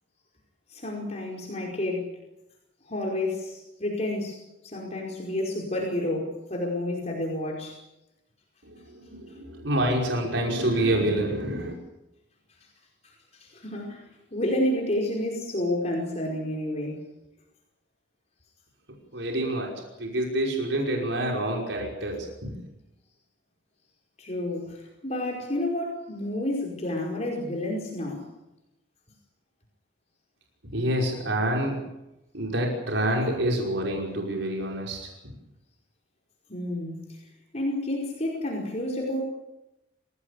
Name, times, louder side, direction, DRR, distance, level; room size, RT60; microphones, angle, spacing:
voice 1, 0.7-2.1 2.9-7.8 13.0-17.0 24.2-28.3 36.5-37.2 37.5-39.2, left 1 dB, 35° left, -1 dB, 5.1 m, -30 dB
voice 2, 8.6-11.7 19.1-22.6 30.7-31.8 32.3-35.3, right 1 dB, 80° right, 0 dB, 5.6 m, -27 dB
27.5 x 18.0 x 8.4 m, 0.92 s
head